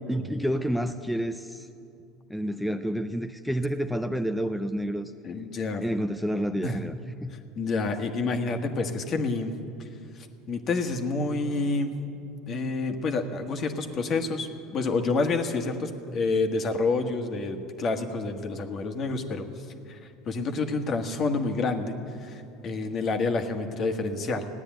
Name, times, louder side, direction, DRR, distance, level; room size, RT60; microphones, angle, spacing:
voice 1, 0.1-1.7 2.3-5.1 5.8-6.9 7.2-7.3, equal, ahead, 7 dB, 0.6 m, -29 dB
voice 2, 5.2-5.8 6.6-6.8 7.5-9.5 10.1-11.9 12.5-19.4 19.9-20.0 20.2-24.5, left 3 dB, 45° left, 6 dB, 1.6 m, -28 dB
16.0 x 9.9 x 9.2 m, 2.6 s
hypercardioid pair, 90°, 0 cm